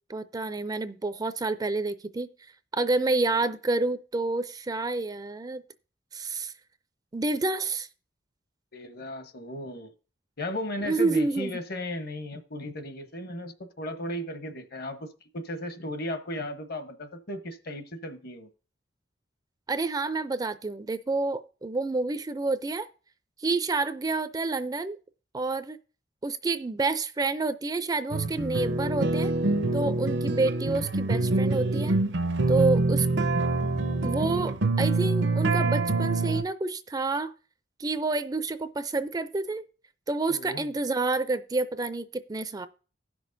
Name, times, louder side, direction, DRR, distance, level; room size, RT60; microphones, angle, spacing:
voice 1, 0.1-2.3 2.7-5.6 6.1-6.5 7.1-7.9 10.8-11.5 19.7-22.9 23.4-25.0 25.3-25.8 26.2-29.3 29.7-32.0 32.5-33.1 34.0-37.3 37.8-39.6 40.1-42.7, right 3 dB, 20° right, 12 dB, 0.4 m, -28 dB
voice 2, 8.7-9.9 10.4-18.5 40.3-40.7, left 1 dB, 55° left, 8 dB, 1.0 m, -36 dB
sound 1, 28.1-36.4, right 2 dB, 70° right, 0.6 m, -25 dB
16.5 x 6.1 x 2.6 m, 0.36 s
head